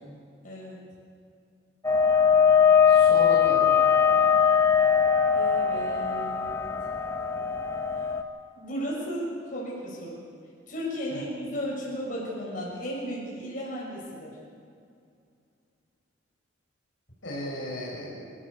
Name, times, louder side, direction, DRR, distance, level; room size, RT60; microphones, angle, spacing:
voice 1, 0.4-0.8 5.3-6.7 8.5-10.2 10.7-14.3, equal, 40° left, -4 dB, 6.9 m, -35 dB
sound 1, 1.8-8.2, left 7 dB, 15° left, 1.0 m, -21 dB
voice 2, 2.9-3.7 11.1-11.2 17.2-18.2, left 1 dB, 75° left, -4 dB, 6.0 m, -34 dB
28.5 x 14.0 x 6.9 m, 2.4 s
head